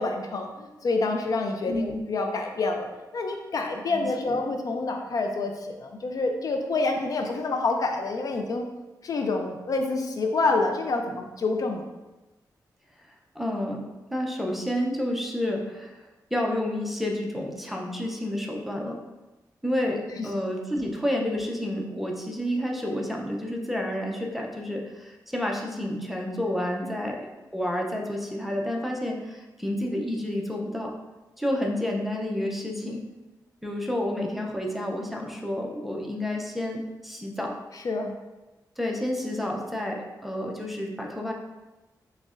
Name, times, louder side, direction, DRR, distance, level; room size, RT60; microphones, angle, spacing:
voice 1, 0.0-2.9 3.1-8.7 9.0-11.9 20.1-20.3 37.7-38.1, left 3 dB, 55° left, 4 dB, 0.3 m, -27 dB
voice 2, 1.7-2.0 3.9-4.4 13.4-13.8 14.1-16.0 16.3-19.0 19.6-30.9 31.4-33.0 33.6-37.6 38.8-41.3, left 1 dB, ahead, -1 dB, 0.5 m, -30 dB
6.1 x 2.1 x 2.4 m, 1.1 s
wide cardioid pair, 120°, 7 cm